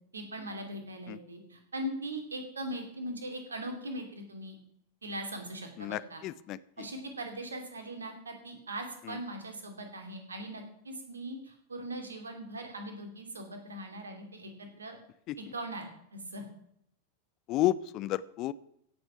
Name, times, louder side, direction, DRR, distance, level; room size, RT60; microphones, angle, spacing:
voice 1, 0.1-4.6 5.0-6.2 6.8-15.0 15.5-16.4, right 1 dB, 75° right, 5 dB, 2.8 m, -40 dB
voice 2, 5.8-6.6 17.5-18.5, left 14 dB, 40° left, 18 dB, 0.6 m, -31 dB
16.0 x 7.9 x 5.9 m, 0.72 s
figure-of-eight pair, 90°, 0 cm